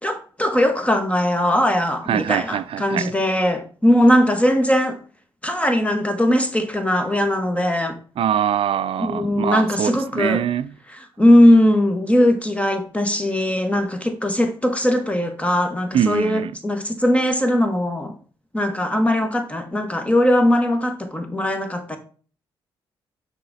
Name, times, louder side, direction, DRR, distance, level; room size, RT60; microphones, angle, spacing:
voice 1, 0.0-5.0 5.4-8.0 9.0-10.4 10.9-18.1 18.5-22.0, left 1 dB, 10° left, 1.5 m, -19 dB
voice 2, 2.1-3.1 8.2-10.7 15.9-16.5, right 9 dB, 65° right, 0.4 m, -23 dB
6.6 x 4.9 x 4.1 m
supercardioid pair, 60°, 10 cm